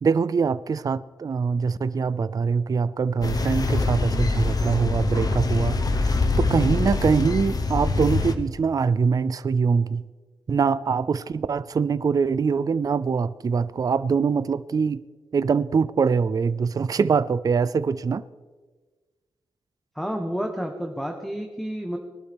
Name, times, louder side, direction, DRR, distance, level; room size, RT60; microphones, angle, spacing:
voice 1, 0.0-10.0 10.5-15.0 15.3-18.2, right 5 dB, 40° right, 0.4 m, -23 dB
sound 1, 3.2-8.3, left 3 dB, 45° left, 1.0 m, -24 dB
voice 2, 19.9-22.0, equal, ahead, 1.0 m, -30 dB
20.0 x 12.5 x 3.5 m
wide cardioid pair, 105°, 9 cm